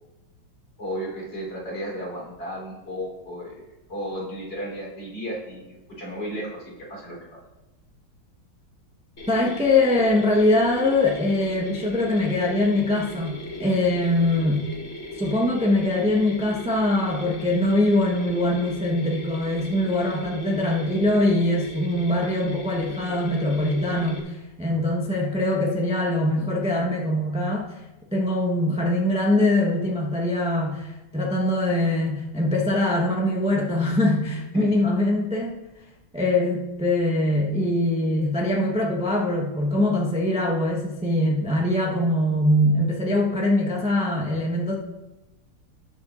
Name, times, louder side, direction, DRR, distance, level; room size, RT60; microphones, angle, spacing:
voice 1, 0.8-3.6 3.9-6.6 6.9-7.2 34.5-34.7, equal, 55° left, -4 dB, 4.5 m, -33 dB
Mechanisms, 9.2-24.2, equal, 35° left, 1.6 m, -38 dB
voice 2, 9.3-14.6 15.2-27.7 28.1-35.6 36.1-44.7, left 1 dB, 5° right, -2 dB, 0.8 m, -23 dB
18.5 x 7.0 x 2.6 m, 1.0 s
omnidirectional pair, 2.3 m